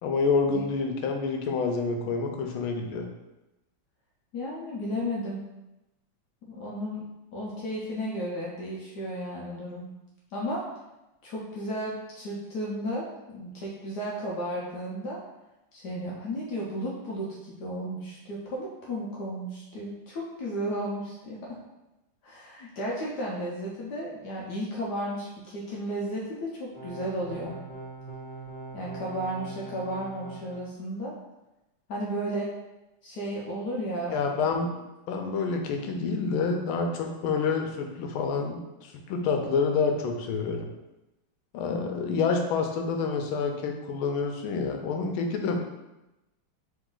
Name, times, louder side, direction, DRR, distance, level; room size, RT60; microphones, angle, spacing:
voice 1, 0.0-3.1 34.1-34.8 35.1-40.7 41.5-45.6, left 4 dB, 90° left, 4 dB, 1.5 m, -28 dB
voice 2, 4.3-5.4 6.4-7.0 7.3-9.9 10.3-10.6 11.2-15.2 15.7-21.6 22.2-27.6 28.7-31.1 31.9-32.5 33.0-34.2, equal, 65° left, -4 dB, 1.1 m, -34 dB
sound 1, 26.7-30.6, right 2 dB, 25° left, 1.4 m, -41 dB
4.0 x 3.2 x 3.7 m, 0.97 s
omnidirectional pair, 2.2 m